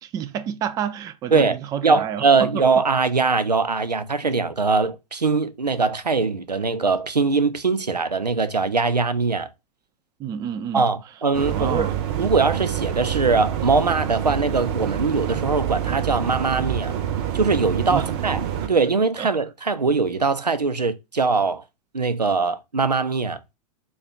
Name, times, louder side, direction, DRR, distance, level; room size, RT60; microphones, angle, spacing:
voice 1, 0.0-2.6 10.2-10.9 11.5-11.9 17.9-18.1 19.2-19.3, right 9 dB, 20° right, 0.3 m, -29 dB
voice 2, 1.8-9.5 10.7-11.9 12.2-16.9 17.3-18.4 18.7-21.6 21.9-23.4, right 4 dB, 90° right, 0.5 m, -21 dB
sound 1, 11.3-18.7, right 10 dB, 45° right, 0.7 m, -27 dB
5.4 x 2.3 x 3.5 m
figure-of-eight pair, 95°, 20 cm